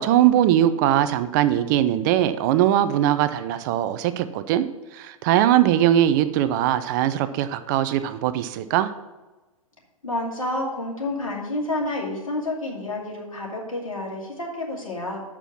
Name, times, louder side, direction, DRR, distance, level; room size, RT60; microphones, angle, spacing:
voice 1, 0.0-4.7 4.9-8.9, right 11 dB, 35° right, 12 dB, 0.5 m, -20 dB
voice 2, 10.0-15.2, left 1 dB, 75° left, -2 dB, 2.4 m, -29 dB
6.8 x 5.9 x 7.1 m, 1.2 s
figure-of-eight pair, 110°, 17 cm